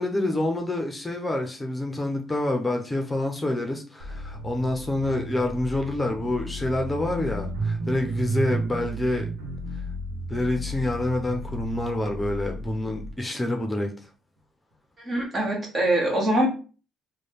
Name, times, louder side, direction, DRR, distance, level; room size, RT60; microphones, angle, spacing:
voice 1, 0.0-9.3 10.3-13.9, left 1 dB, 20° left, 0.7 m, -27 dB
sound 1, 4.0-13.1, right 2 dB, 75° right, 1.0 m, -33 dB
voice 2, 15.0-16.5, right 1 dB, 40° right, 1.7 m, -23 dB
3.2 x 2.3 x 4.1 m
hypercardioid pair, 50°, 0 cm